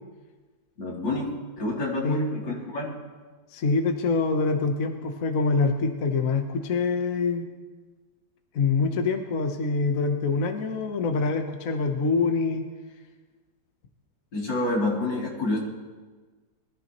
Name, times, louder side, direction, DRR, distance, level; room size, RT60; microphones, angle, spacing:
voice 1, 0.8-1.3 1.6-3.0 14.3-15.6, left 2 dB, 75° left, -4 dB, 3.6 m, -28 dB
voice 2, 3.5-7.4 8.5-12.7, left 4 dB, 55° left, 5 dB, 1.2 m, -25 dB
22.5 x 13.5 x 3.0 m, 1.4 s
omnidirectional pair, 2.0 m